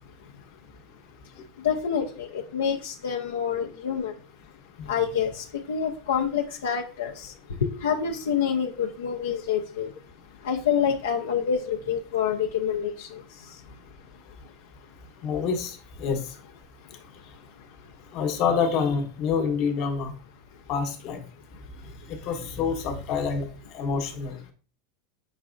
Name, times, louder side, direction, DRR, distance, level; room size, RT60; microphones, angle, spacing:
voice 1, 1.2-4.2 4.9-9.9 10.4-13.9 14.4-14.5 16.8-17.2 17.8-17.9, left 7 dB, 90° left, 0.4 m, -28 dB
voice 2, 15.2-16.3 18.1-20.1 20.7-21.2 21.8-23.5 23.7-24.5, left 5 dB, 55° left, 0.9 m, -27 dB
4.8 x 4.0 x 2.5 m
hypercardioid pair, 110°, 0 cm